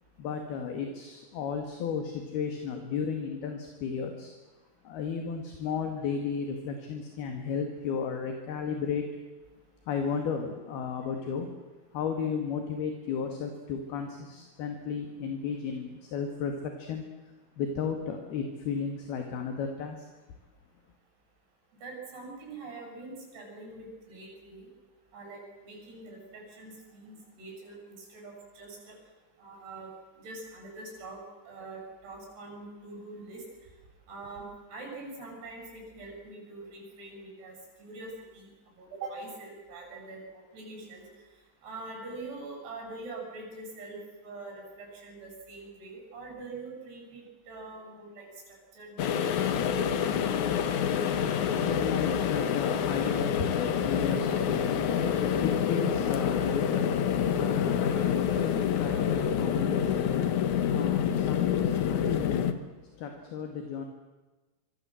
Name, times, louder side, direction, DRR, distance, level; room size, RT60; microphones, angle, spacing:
voice 1, 0.2-4.3 4.9-9.1 9.9-11.5 11.9-17.1 17.6-20.0 50.5-63.9, left 6 dB, 60° left, 4 dB, 3.7 m, -34 dB
voice 2, 21.8-24.7 25.1-29.0 29.4-29.9 30.2-33.4 34.1-38.5 38.8-41.0 41.6-44.0 44.2-48.3 48.7-49.7, right 3 dB, 55° right, 0 dB, 9.6 m, -44 dB
sound 1, 49.0-62.5, left 8 dB, 80° left, 1.7 m, -27 dB
25.5 x 24.5 x 7.8 m, 1.2 s
omnidirectional pair, 5.6 m